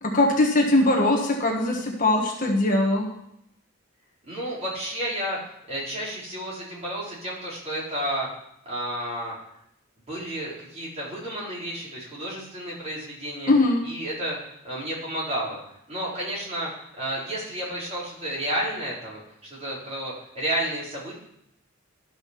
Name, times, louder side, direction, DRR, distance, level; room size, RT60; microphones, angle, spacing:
voice 1, 0.0-3.1 13.5-13.8, left 2 dB, 40° left, 1 dB, 1.4 m, -21 dB
voice 2, 4.3-5.4 5.7-8.3 8.7-9.3 10.1-13.5 13.8-21.1, right 1 dB, 30° right, -6 dB, 4.1 m, -31 dB
12.0 x 5.6 x 5.9 m, 0.76 s
head